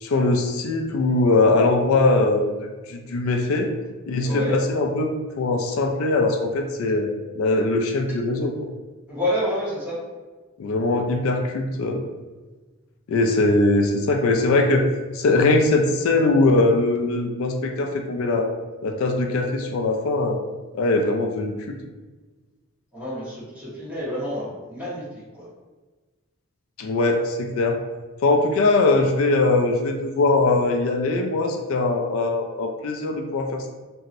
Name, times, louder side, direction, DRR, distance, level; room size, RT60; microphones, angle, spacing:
voice 1, 0.0-2.5 2.9-3.7 4.1-7.1 7.4-8.5 10.6-12.0 13.1-14.9 15.1-18.5 18.8-20.4 20.7-21.8 26.8-27.8 28.2-33.7, left 2 dB, 80° left, 4 dB, 0.4 m, -21 dB
voice 2, 4.2-4.6 9.1-10.0 22.9-25.0 25.3-25.5, equal, 10° right, -10 dB, 1.2 m, -28 dB
2.9 x 2.7 x 2.5 m, 1.3 s
head